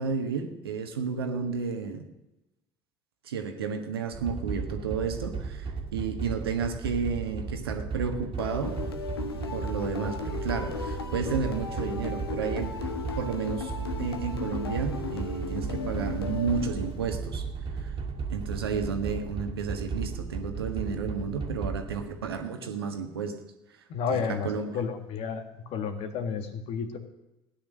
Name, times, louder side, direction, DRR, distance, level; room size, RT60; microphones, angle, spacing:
voice 1, 0.0-2.0 3.2-8.7 9.5-12.8 13.2-13.7 14.0-17.5 17.7-17.9 18.3-23.4 24.1-24.8, right 5 dB, 85° right, 5 dB, 1.6 m, -32 dB
sound 1, 4.1-22.4, right 5 dB, 45° right, 2.3 m, -35 dB
sound 2, 8.4-17.3, left 5 dB, 85° left, 1.3 m, -36 dB
voice 2, 23.9-27.0, left 6 dB, 55° left, 7 dB, 1.9 m, -32 dB
16.0 x 10.5 x 6.4 m, 0.94 s
hypercardioid pair, 60°, 12 cm